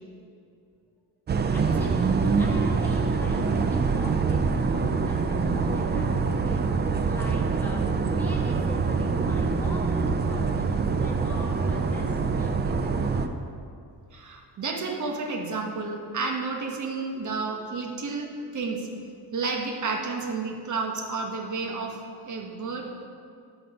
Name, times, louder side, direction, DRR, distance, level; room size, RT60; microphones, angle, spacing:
sound 1, 1.3-13.3, right 4 dB, 25° right, 0.4 m, -25 dB
voice 1, 1.5-13.2, left 1 dB, 5° left, -3 dB, 1.5 m, -42 dB
voice 2, 14.1-18.9 19.3-23.1, right 4 dB, 45° right, 1 dB, 1.3 m, -31 dB
12.5 x 4.4 x 5.3 m, 2.5 s
cardioid pair, 130°, 43 cm